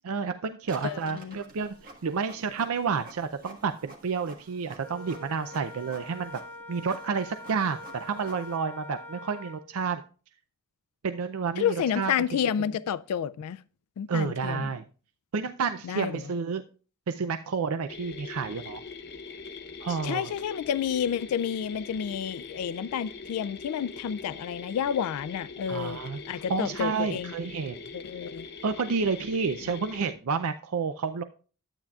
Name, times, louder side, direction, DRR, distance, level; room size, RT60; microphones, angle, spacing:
voice 1, 0.0-6.4 6.7-10.0 11.0-12.4 14.1-14.8 15.3-16.6 17.1-18.8 19.8-20.3 25.7-27.8 28.6-31.2, right 5 dB, 75° right, 0.5 m, -30 dB
Printer, 0.6-8.6, right 2 dB, 40° right, 1.5 m, -50 dB
voice 2, 0.8-1.4 11.6-13.6 14.0-14.7 15.8-16.2 20.0-26.0 26.3-27.3 27.9-28.5, left 8 dB, 90° left, 0.3 m, -30 dB
Wind instrument woodwind instrument, 4.8-9.7, left 2 dB, 10° left, 0.6 m, -44 dB
Bad Pulley, 17.9-30.1, left 4 dB, 50° left, 0.7 m, -42 dB
12.0 x 8.8 x 2.3 m
head